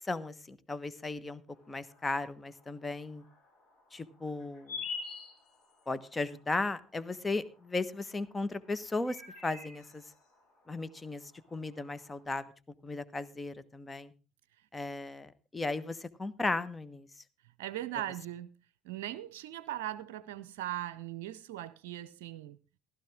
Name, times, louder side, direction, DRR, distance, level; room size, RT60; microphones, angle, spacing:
voice 1, 0.1-1.4 1.7-3.2 3.9-4.8 5.9-9.2 9.4-10.0 10.7-11.2 11.5-12.5 12.8-14.1 14.7-17.1, left 3 dB, 20° left, 1.2 m, -36 dB
sound 1, 1.5-12.2, left 5 dB, 60° left, 7.4 m, -48 dB
voice 2, 17.6-18.5 18.8-22.6, right 13 dB, 70° right, 0.6 m, -39 dB
15.5 x 12.5 x 3.6 m
hypercardioid pair, 60°, 0 cm